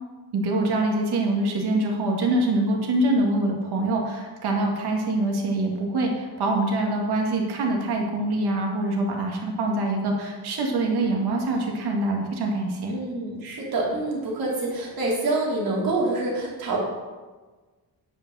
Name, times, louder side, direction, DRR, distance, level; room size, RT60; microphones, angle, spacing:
voice 1, 0.3-12.9, right 2 dB, 90° right, 0 dB, 2.2 m, -24 dB
voice 2, 12.9-16.8, right 2 dB, 65° right, -3 dB, 3.0 m, -26 dB
10.5 x 5.5 x 6.4 m, 1.3 s
wide cardioid pair, 160°, 38 cm